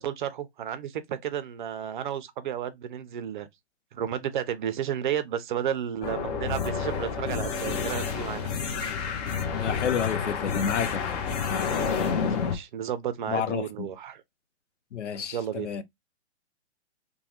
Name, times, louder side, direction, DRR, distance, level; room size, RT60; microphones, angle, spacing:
voice 1, 0.0-3.5 3.9-8.5 12.1-14.2 15.3-15.7, right 9 dB, 45° right, 0.5 m, -32 dB
sound 1, 6.0-12.6, left 6 dB, 35° left, 0.7 m, -29 dB
voice 2, 9.5-11.2 11.5-11.8 13.3-13.9 14.9-15.8, left 8 dB, 85° left, 0.7 m, -30 dB
3.0 x 2.2 x 2.8 m
hypercardioid pair, 135°, 35 cm